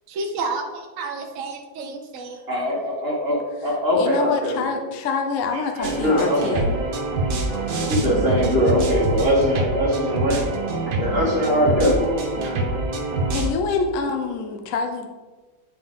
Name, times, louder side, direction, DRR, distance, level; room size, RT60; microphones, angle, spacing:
voice 1, 0.1-2.4 2.8-2.9, right 3 dB, 65° right, 3 dB, 0.8 m, -30 dB
voice 2, 2.5-4.6 5.5-6.6 7.5-10.4 11.0-12.0 12.3-12.7, equal, 35° right, -3 dB, 1.5 m, -22 dB
voice 3, 3.9-6.7 13.3-15.1, left 4 dB, 55° left, 4 dB, 0.9 m, -26 dB
sound 1, 5.8-13.5, right 2 dB, 85° right, 1.8 m, -25 dB
9.6 x 4.6 x 3.6 m, 1.3 s
omnidirectional pair, 2.1 m